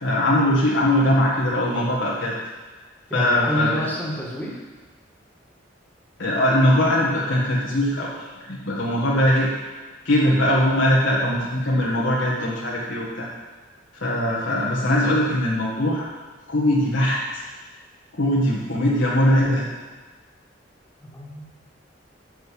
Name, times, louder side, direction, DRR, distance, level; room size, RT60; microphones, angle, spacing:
voice 1, 0.0-2.3 3.1-3.7 6.2-9.5 10.0-13.3 13.9-16.0 16.5-17.4 18.1-19.7, left 1 dB, 85° left, -5 dB, 1.7 m, -21 dB
voice 2, 3.1-4.6 21.0-21.5, equal, 10° left, -4 dB, 1.8 m, -29 dB
6.7 x 6.6 x 7.0 m, 1.3 s
head